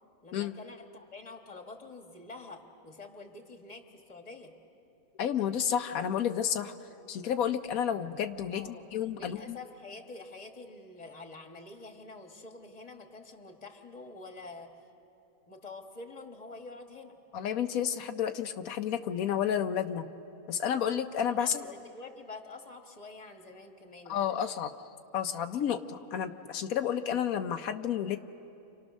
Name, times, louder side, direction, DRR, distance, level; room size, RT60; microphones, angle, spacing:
voice 1, 0.2-4.5 8.5-8.8 9.2-14.7 15.5-17.2 21.3-24.2, left 3 dB, 30° left, 3 dB, 1.9 m, -47 dB
voice 2, 5.2-6.7 7.1-9.6 17.3-20.1 20.5-21.7 24.1-24.7 25.1-28.2, left 9 dB, 85° left, 7 dB, 1.2 m, -31 dB
30.0 x 26.0 x 6.3 m, 2.8 s
omnidirectional pair, 1.5 m